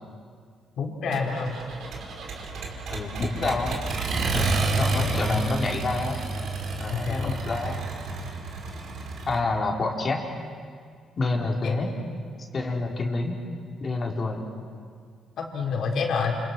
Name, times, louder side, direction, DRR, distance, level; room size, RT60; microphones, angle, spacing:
voice 1, 0.8-1.6 4.3-5.5 6.9-7.3 11.6-11.7 12.9-13.1 15.4-16.4, left 5 dB, 70° left, 0 dB, 5.0 m, -29 dB
Accelerating revving vroom, 1.1-9.4, right 3 dB, 70° right, 4.6 m, -30 dB
voice 2, 2.9-3.8 4.3-6.2 6.8-7.8 9.3-10.2 11.2-11.9 12.5-13.4 13.8-14.4, left 3 dB, 40° left, -1 dB, 4.5 m, -28 dB
29.0 x 28.5 x 6.3 m, 2.1 s
cardioid pair, 90°, 0 cm